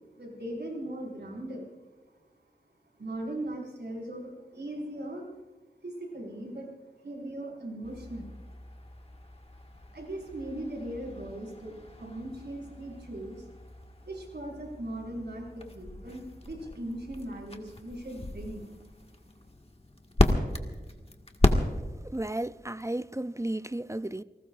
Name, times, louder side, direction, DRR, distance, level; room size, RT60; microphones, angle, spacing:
voice 1, 0.1-1.7 3.0-5.3 5.8-6.7 7.0-8.4 9.9-13.5 14.0-18.7, right 1 dB, 85° right, 5.2 m, -39 dB
sound 1, 7.8-22.2, left 2 dB, 35° left, 1.7 m, -34 dB
voice 2, 22.0-24.2, right 1 dB, 15° right, 0.4 m, -33 dB
28.5 x 19.5 x 2.5 m
wide cardioid pair, 50°, 17 cm